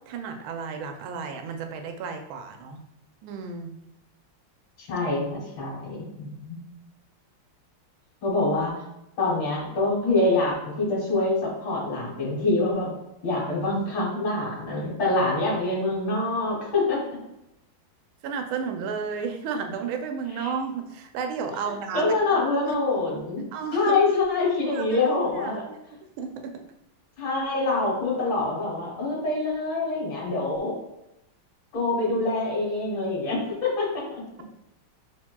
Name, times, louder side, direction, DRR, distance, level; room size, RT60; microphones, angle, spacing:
voice 1, 0.1-2.8 3.2-3.7 18.2-22.1 22.7-22.8 23.5-24.0 24.7-25.1 25.4-25.8 26.2-26.5, right 5 dB, 80° right, 5 dB, 1.4 m, -32 dB
voice 2, 4.8-6.6 8.2-8.7 9.2-12.9 13.2-17.0 20.4-20.5 21.9-23.5 23.7-25.6 27.2-30.8 31.7-34.2, left 2 dB, 70° left, -8 dB, 2.0 m, -25 dB
6.4 x 3.0 x 2.2 m, 0.87 s
omnidirectional pair, 2.3 m